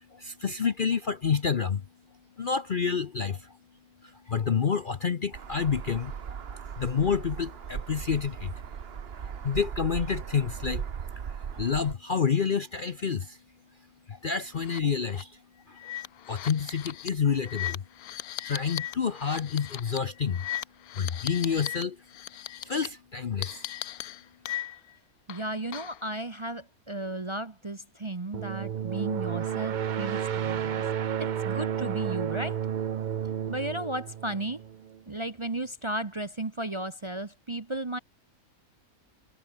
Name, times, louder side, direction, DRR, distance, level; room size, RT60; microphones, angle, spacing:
voice 1, 0.0-1.8 2.4-3.6 4.0-8.5 9.4-10.9 11.2-13.4 14.1-15.4 15.7-15.9 16.3-17.8 18.4-20.4 20.9-22.0 22.3-23.7, left 6 dB, 45° left, 0.7 m, -29 dB
sound 1, 5.3-11.9, right 7 dB, 45° right, 1.1 m, -38 dB
sound 2, 14.6-14.8 15.1-15.2 15.8-21.8 22.1-22.9 23.4-24.9 25.3-26.1, left 12 dB, 80° left, 1.2 m, -38 dB
voice 2, 25.3-30.8 31.2-32.6 33.5-34.6 35.1-38.0, right 1 dB, 25° right, 0.8 m, -34 dB
sound 3, 28.3-35.0, right 9 dB, 70° right, 0.4 m, -31 dB
omnidirectional pair, 1.6 m